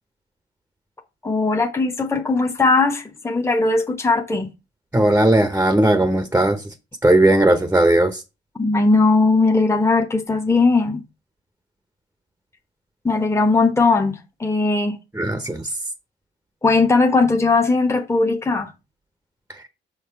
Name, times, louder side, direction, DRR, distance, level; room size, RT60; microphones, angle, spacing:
voice 1, 1.2-4.5 8.6-11.0 13.0-15.0 16.6-18.7, left 3 dB, 15° left, 1.1 m, -18 dB
voice 2, 4.9-6.7 7.0-8.2 15.1-15.7 19.5-19.6, right 1 dB, 10° right, 0.9 m, -17 dB
6.2 x 5.8 x 4.6 m
cardioid pair, 90°, 20 cm